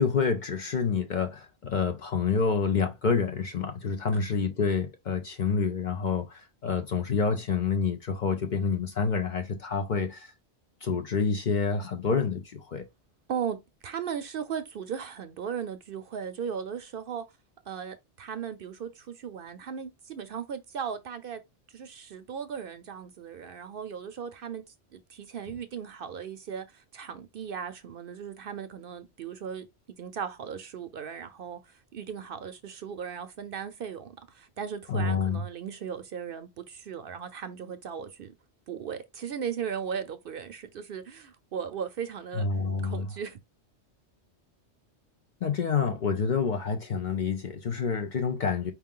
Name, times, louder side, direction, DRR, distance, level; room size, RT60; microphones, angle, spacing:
voice 1, 0.0-10.3 10.8-12.9 34.9-35.4 42.4-43.1 45.4-48.7, left 5 dB, 50° left, 0.7 m, -28 dB
voice 2, 13.8-17.2 17.7-21.4 21.7-24.6 24.9-29.7 30.0-38.3 38.7-42.5 42.8-43.4, right 7 dB, 60° right, 0.7 m, -37 dB
4.8 x 3.0 x 3.7 m
omnidirectional pair, 1.2 m